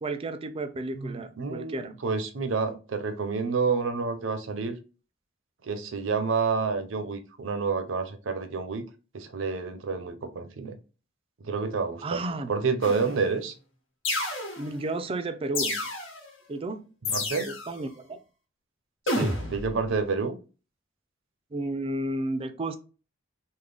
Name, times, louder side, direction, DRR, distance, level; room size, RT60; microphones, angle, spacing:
voice 1, 0.0-2.0 12.0-12.5 14.6-15.9 16.5-16.8 17.5-18.2 21.5-22.8, right 2 dB, 30° right, 0.4 m, -32 dB
voice 2, 0.9-4.8 5.6-8.9 9.1-10.7 11.4-12.2 12.5-13.5 17.0-17.5 19.1-20.4, right 4 dB, 70° right, 0.6 m, -29 dB
sound 1, 12.8-13.3 14.0-14.8 15.5-16.3 17.0-17.8 19.1-19.7, left 2 dB, 85° left, 1.3 m, -30 dB
3.7 x 2.1 x 3.3 m
head